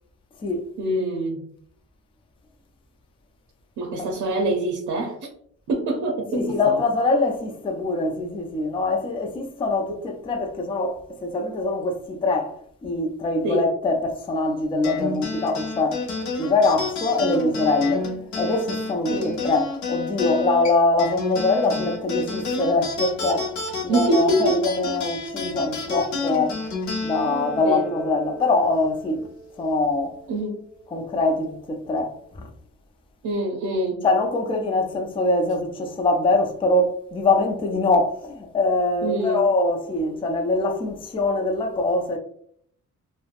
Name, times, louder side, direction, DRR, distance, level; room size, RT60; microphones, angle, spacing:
voice 1, 0.8-1.4 3.8-5.3 5.7-6.8 13.4-13.7 19.1-19.4 23.9-24.6 27.3-27.9 30.3-30.7 33.2-34.0 39.0-39.5, right 1 dB, 80° right, 0.6 m, -25 dB
voice 2, 6.3-16.1 16.4-23.5 23.8-26.6 27.0-29.3 29.6-30.2 30.9-32.5 34.0-42.2, left 2 dB, 20° left, 0.4 m, -23 dB
sound 1, 14.8-29.6, left 3 dB, 80° left, 0.8 m, -30 dB
3.1 x 2.1 x 2.4 m
cardioid pair, 120°, 29 cm